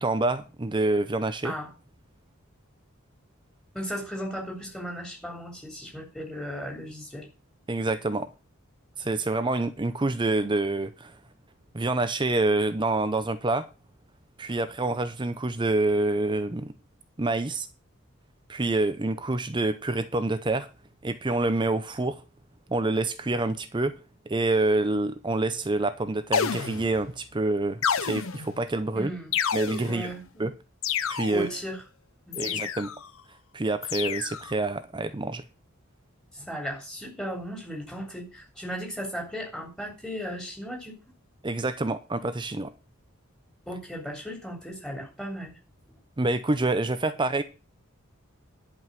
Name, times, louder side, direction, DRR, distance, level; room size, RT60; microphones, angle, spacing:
voice 1, 0.0-1.5 7.7-8.3 9.0-11.1 11.7-13.7 14.4-16.7 17.2-17.7 18.5-20.7 21.0-22.2 22.7-24.0 24.3-29.1 29.5-30.1 30.4-30.5 31.1-31.5 32.3-32.9 33.5-35.4 41.4-42.7 46.2-47.4, right 2 dB, 20° right, 0.6 m, -27 dB
voice 2, 3.7-7.3 28.9-29.4 29.9-30.5 31.3-31.8 32.3-32.6 36.3-41.0 43.7-45.5 45.9-46.0, equal, 5° left, 3.5 m, -36 dB
sound 1, 26.3-27.1 27.8-28.6 29.3-30.1 30.8-31.6 32.3-33.1 33.8-34.5, left 7 dB, 65° left, 0.7 m, -29 dB
11.0 x 5.3 x 7.5 m
head